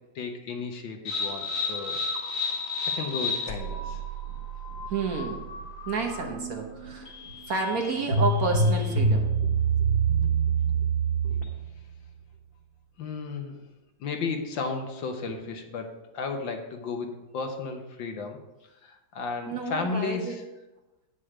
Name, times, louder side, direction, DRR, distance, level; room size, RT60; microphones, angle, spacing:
voice 1, 0.2-2.0 3.0-4.0 13.0-13.6 14.0-18.4 18.8-20.4, left 4 dB, 75° left, 4 dB, 1.8 m, -34 dB
sound 1, 1.0-11.6, right 3 dB, 45° left, 1.8 m, -28 dB
voice 2, 4.8-5.4 5.8-7.1 7.5-9.6 11.2-11.4 19.5-20.4, right 4 dB, 55° right, 2 dB, 1.4 m, -30 dB
9.0 x 6.7 x 5.0 m, 1.0 s
omnidirectional pair, 2.1 m